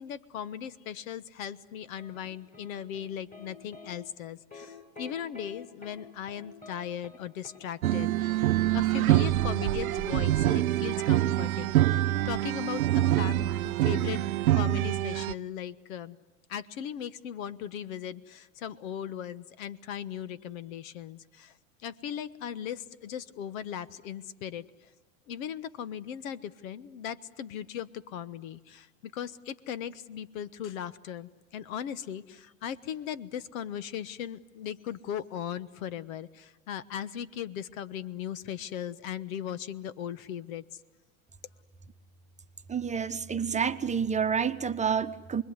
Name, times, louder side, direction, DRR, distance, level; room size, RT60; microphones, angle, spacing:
voice 1, 0.0-8.4 8.7-14.2 14.5-16.2 16.5-21.5 21.8-24.9 25.3-40.6, left 9 dB, 70° left, 18 dB, 1.4 m, -38 dB
sound 1, 2.0-3.5 3.7-3.9 4.5-4.7 5.0-5.5 5.8-6.0 6.3-6.8 7.0-7.2 7.4-7.6, left 4 dB, 20° left, 7.5 m, -48 dB
sound 2, 7.8-15.3, right 14 dB, 85° right, 0.9 m, -25 dB
voice 2, 42.7-45.4, right 7 dB, 15° right, 9 dB, 1.1 m, -29 dB
29.0 x 21.5 x 9.7 m, 1.2 s
hypercardioid pair, 105°, 41 cm